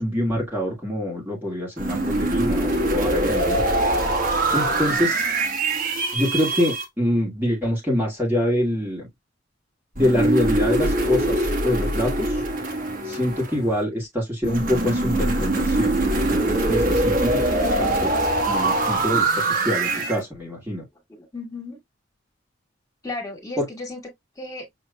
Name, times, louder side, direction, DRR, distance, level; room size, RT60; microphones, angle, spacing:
voice 1, 0.0-3.6 4.5-5.2 6.1-9.1 10.0-12.4 13.0-18.1 18.5-20.8 23.6-23.7, left 1 dB, 10° right, 1.4 m, -25 dB
sound 1, 1.8-6.8 10.0-13.7 14.4-20.2, right 2 dB, 45° right, 1.3 m, -23 dB
voice 2, 21.1-21.8 23.0-24.0 24.3-24.6, left 2 dB, 15° left, 1.8 m, -34 dB
6.3 x 2.9 x 2.2 m
head